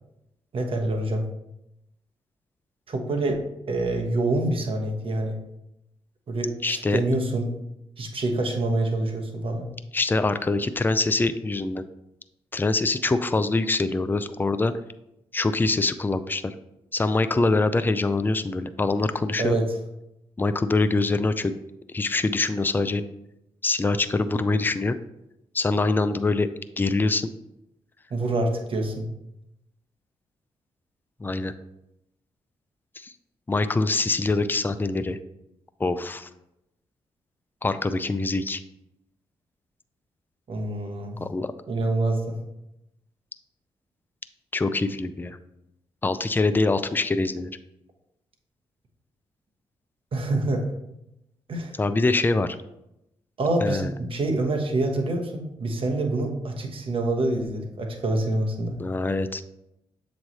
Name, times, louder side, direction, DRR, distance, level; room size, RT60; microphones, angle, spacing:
voice 1, 0.5-1.2 2.9-3.4 3.7-5.4 6.3-7.5 8.0-9.7 19.4-19.6 28.1-29.1 40.5-41.2 41.7-42.4 50.1-50.7 51.5-51.8 53.4-58.8, right 2 dB, 50° right, 2 dB, 1.2 m, -26 dB
voice 2, 6.6-7.0 9.9-11.8 12.5-14.7 15.3-16.5 16.9-19.6 20.4-21.5 21.9-23.0 23.6-25.0 25.5-26.5 26.8-27.3 31.2-31.5 33.0-33.1 33.5-35.2 35.8-36.3 37.6-38.6 41.2-41.5 44.5-45.4 46.0-47.5 51.8-52.6 53.6-53.9 58.8-59.4, left 3 dB, 15° left, 11 dB, 0.4 m, -24 dB
7.3 x 3.2 x 4.1 m, 0.86 s
supercardioid pair, 60°, 11 cm